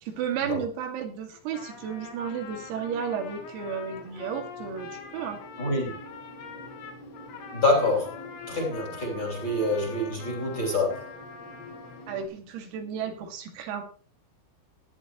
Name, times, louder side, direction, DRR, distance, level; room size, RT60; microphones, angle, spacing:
voice 1, 0.0-5.4 12.1-13.8, right 8 dB, 85° right, 5.0 m, -33 dB
Trumpet, 1.3-12.2, left 6 dB, 75° left, 5.0 m, -44 dB
sound 1, 1.6-12.3, left 1 dB, 60° left, 6.6 m, -48 dB
voice 2, 5.6-5.9 7.5-8.2 8.5-11.1, left 2 dB, 25° left, 3.1 m, -26 dB
18.5 x 11.0 x 3.1 m
omnidirectional pair, 6.0 m